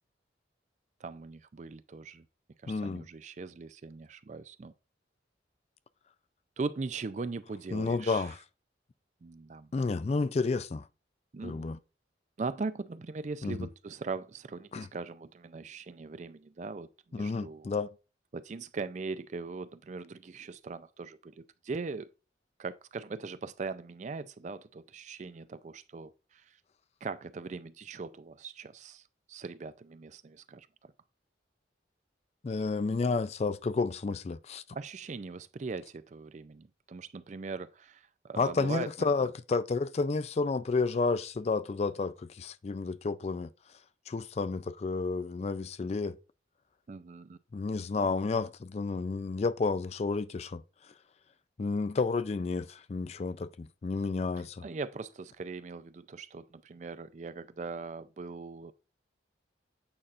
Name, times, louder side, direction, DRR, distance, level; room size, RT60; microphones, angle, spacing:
voice 1, 1.0-2.2 2.6-4.7 6.6-8.3 9.2-9.7 11.3-11.7 12.4-17.8 18.3-22.1 22.6-26.4 27.0-30.9 34.7-39.3 46.9-47.4 54.6-58.7, right 4 dB, 40° right, 0.4 m, -40 dB
voice 2, 2.7-3.0 7.7-8.4 9.7-10.9 11.4-11.8 13.4-13.7 14.7-14.9 17.1-17.9 32.4-34.6 38.4-43.5 44.1-46.2 47.5-50.6 51.6-54.7, left 4 dB, 35° left, 0.3 m, -31 dB
8.7 x 5.5 x 2.5 m
head